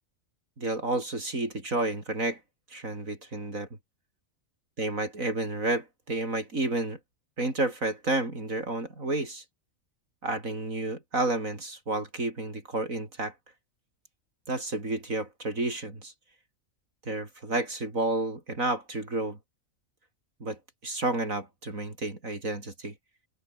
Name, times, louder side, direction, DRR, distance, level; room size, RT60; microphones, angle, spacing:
voice 1, 0.6-2.4 2.7-3.7 4.8-7.0 7.4-9.4 10.2-13.3 14.5-16.1 17.1-19.4 20.4-22.9, right 2 dB, 80° right, 5.8 m, -31 dB
omnidirectional pair, 1.4 m